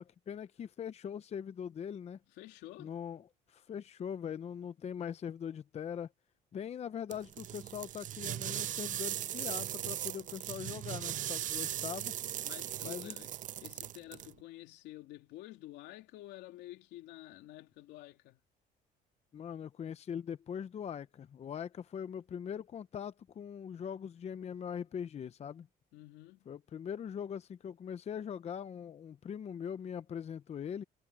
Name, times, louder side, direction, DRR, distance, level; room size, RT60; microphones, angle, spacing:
voice 1, 0.0-2.2 2.8-6.1 6.5-12.1 12.8-13.2 19.3-25.7 26.5-30.8, left 8 dB, 40° left, 0.7 m, -41 dB
voice 2, 2.3-2.9 12.4-13.3 13.6-18.4 25.9-26.5, left 16 dB, 85° left, 3.1 m, -50 dB
sound 1, 7.1-14.3, right 12 dB, 50° right, 0.5 m, -38 dB
cardioid pair, 110°, 17 cm